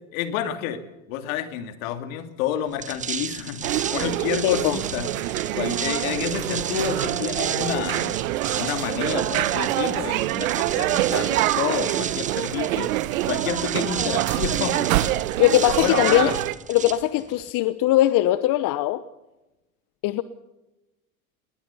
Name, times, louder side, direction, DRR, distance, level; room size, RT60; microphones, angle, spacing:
voice 1, 0.1-0.8 1.1-5.1 5.5-8.2 8.6-12.9 13.3-14.9 15.8-16.4, left 10 dB, 70° left, 9 dB, 2.8 m, -29 dB
sound 1, 2.7-17.5, right 7 dB, 20° right, 0.7 m, -34 dB
sound 2, 3.6-16.5, right 15 dB, 75° right, 1.3 m, -25 dB
voice 2, 4.4-4.8 15.4-16.3 16.7-19.0 20.0-20.2, left 14 dB, 50° left, 14 dB, 1.1 m, -20 dB
21.0 x 19.0 x 7.1 m, 1.0 s
hypercardioid pair, 100°, 42 cm